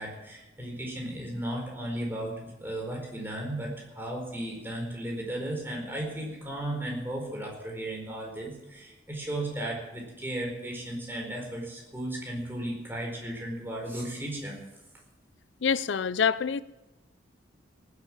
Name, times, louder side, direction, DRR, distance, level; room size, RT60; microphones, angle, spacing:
voice 1, 0.0-14.6, right 1 dB, 10° right, 4.5 m, -35 dB
voice 2, 15.6-16.6, left 6 dB, 90° left, 0.5 m, -26 dB
18.5 x 8.5 x 7.4 m
head